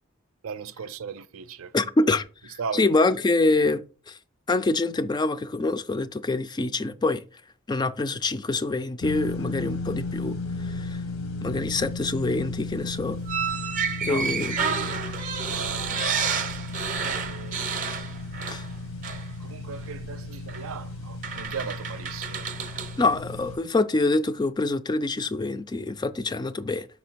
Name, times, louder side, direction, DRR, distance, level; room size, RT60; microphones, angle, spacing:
voice 1, 0.4-2.1 2.6-2.9 14.1-14.4 14.7-14.9 15.5-16.1 17.0-17.6 19.4-22.5, right 6 dB, 85° right, 0.5 m, -37 dB
voice 2, 1.7-2.2 2.7-4.2 4.5-7.2 7.7-11.0 11.4-13.2 14.0-14.5 18.5-18.6 23.0-26.9, left 2 dB, 20° left, 0.3 m, -25 dB
sound 1, 9.0-23.6, left 2 dB, 80° left, 1.0 m, -35 dB
sound 2, 13.3-18.8 19.0-19.3 20.5-20.6 21.2-23.0, right 6 dB, 40° right, 0.6 m, -30 dB
5.7 x 4.2 x 4.5 m
head